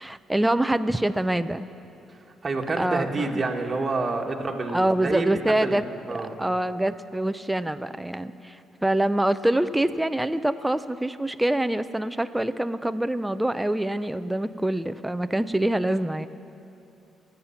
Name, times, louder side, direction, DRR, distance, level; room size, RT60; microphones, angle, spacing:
voice 1, 0.0-1.7 2.8-3.4 4.7-5.8 6.4-16.3, right 1 dB, 10° right, 11 dB, 0.6 m, -25 dB
voice 2, 2.4-5.3 5.6-6.4, right 3 dB, 30° right, 1 dB, 1.7 m, -28 dB
26.0 x 8.9 x 5.8 m, 2.8 s
cardioid pair, 90°, 0 cm